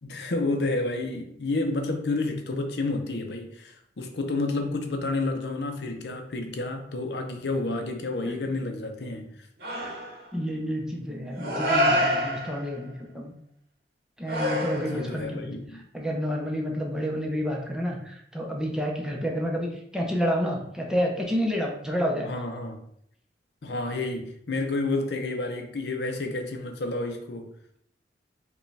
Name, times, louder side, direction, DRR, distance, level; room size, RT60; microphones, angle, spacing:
voice 1, 0.0-9.5 14.7-15.8 22.2-22.8 23.6-27.5, left 2 dB, 65° left, 5 dB, 0.6 m, -30 dB
sound 1, 9.6-10.3 11.3-12.8 14.3-15.2, equal, 60° right, 0.9 m, -27 dB
voice 2, 10.3-13.3 14.2-15.6 15.9-22.4, equal, 5° right, -1 dB, 0.6 m, -29 dB
4.8 x 2.3 x 3.2 m, 0.68 s
head